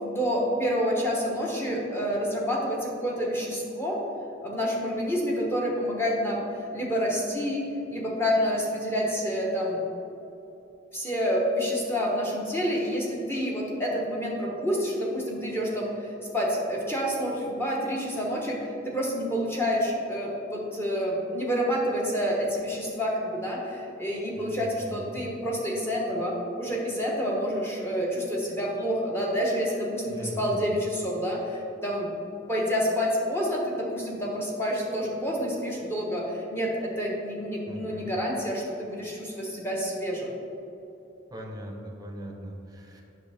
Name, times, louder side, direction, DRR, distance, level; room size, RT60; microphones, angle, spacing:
voice 1, 0.0-4.0 4.4-6.5 6.7-9.9 10.9-32.1 32.5-40.3, equal, 10° left, -3 dB, 1.0 m, -28 dB
voice 2, 24.4-25.2 30.1-30.6 37.6-38.1 41.3-43.0, equal, 20° right, 0 dB, 0.9 m, -40 dB
8.0 x 6.2 x 3.5 m, 2.9 s
head